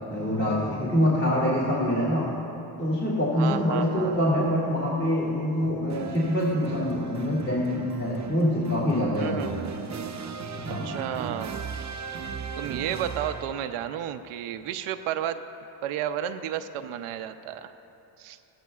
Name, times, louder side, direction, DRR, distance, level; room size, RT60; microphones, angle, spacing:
voice 1, 0.1-2.3 2.8-9.5 10.5-10.9, equal, 25° left, -6 dB, 2.5 m, -25 dB
voice 2, 3.3-4.5 9.2-9.9 10.7-11.6 12.6-15.4 15.8-17.7 18.2-18.4, right 10 dB, 80° right, 9 dB, 0.6 m, -32 dB
sound 1, 5.9-13.8, right 5 dB, 35° right, 0.7 m, -37 dB
16.0 x 13.5 x 2.4 m, 3.0 s
cardioid pair, 80°, 50 cm